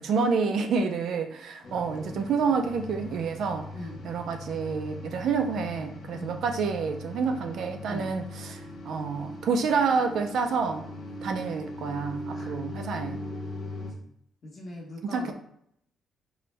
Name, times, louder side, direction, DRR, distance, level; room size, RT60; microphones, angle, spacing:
voice 1, 0.0-3.7 4.0-10.9 11.2-13.2 15.1-15.3, right 5 dB, 65° right, 6 dB, 0.4 m, -28 dB
sound 1, 1.6-13.9, left 2 dB, 55° left, 0.8 m, -40 dB
voice 2, 14.4-15.3, left 1 dB, 35° left, -2 dB, 1.1 m, -41 dB
4.2 x 2.2 x 3.2 m, 0.71 s
cardioid pair, 155°, 0 cm